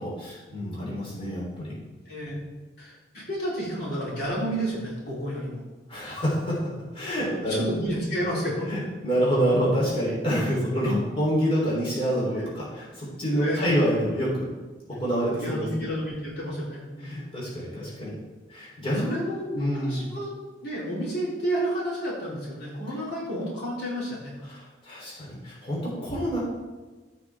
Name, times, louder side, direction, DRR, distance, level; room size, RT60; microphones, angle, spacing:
voice 1, 0.0-1.8 5.9-7.6 8.7-14.5 14.9-15.9 17.0-18.1 18.5-20.1 24.5-26.4, equal, 30° left, -6 dB, 3.6 m, -27 dB
voice 2, 2.1-2.5 2.8-5.6 7.5-8.7 10.3-10.4 13.3-13.7 15.3-17.3 19.0-20.3 20.6-24.3, equal, 60° left, -7 dB, 3.6 m, -31 dB
15.5 x 6.0 x 3.6 m, 1.3 s
head